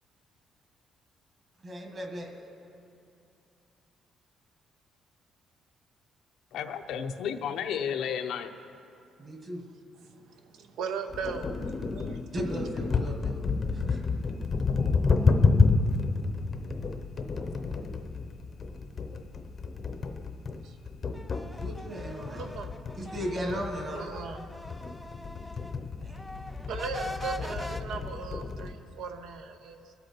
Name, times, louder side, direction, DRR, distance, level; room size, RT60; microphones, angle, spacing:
voice 1, 1.6-2.3 9.2-9.6 12.3-14.0 21.5-22.5 23.0-24.1 26.0-26.2, equal, 30° right, 2 dB, 1.7 m, -36 dB
voice 2, 6.5-8.5 19.1-19.2, left 8 dB, 70° left, 7 dB, 0.7 m, -32 dB
voice 3, 10.1-12.2 20.6-20.8 22.3-22.7 23.9-24.5 26.7-29.9, right 5 dB, 75° right, 7 dB, 0.9 m, -38 dB
sound 1, 11.1-28.7, left 4 dB, 30° left, 0.7 m, -30 dB
sound 2, 21.1-25.8 26.1-27.8, left 1 dB, 5° left, 0.4 m, -42 dB
23.5 x 8.2 x 4.4 m, 2.5 s
cardioid pair, 165°, 0 cm